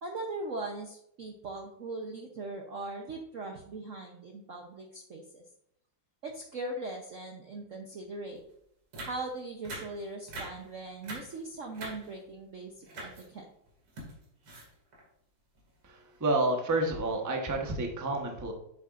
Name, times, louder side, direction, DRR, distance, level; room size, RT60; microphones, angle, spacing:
voice 1, 0.0-5.4 6.2-8.4 9.0-13.5, right 2 dB, 60° right, 1 dB, 0.8 m, -40 dB
sound 1, 8.4-8.5 8.9-9.3 9.6-10.0 10.3-10.7 10.9-11.4 11.7-12.3 12.8-13.3 13.7-15.1 15.6-15.7 16.0-16.2, right 2 dB, 85° right, 3.1 m, -43 dB
voice 2, 15.9-18.5, right 2 dB, 15° right, 2 dB, 0.6 m, -29 dB
8.5 x 7.1 x 2.5 m, 0.74 s
omnidirectional pair, 2.3 m